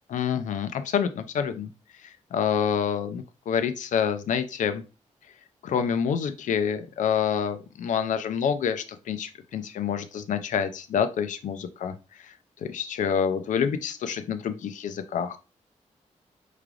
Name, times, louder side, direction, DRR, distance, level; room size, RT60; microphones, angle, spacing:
voice 1, 0.1-1.7 2.3-4.8 5.6-11.9 12.6-15.4, left 7 dB, 90° left, 9 dB, 0.4 m, -27 dB
4.7 x 3.2 x 2.4 m, 0.31 s
cardioid pair, 95°, 13 cm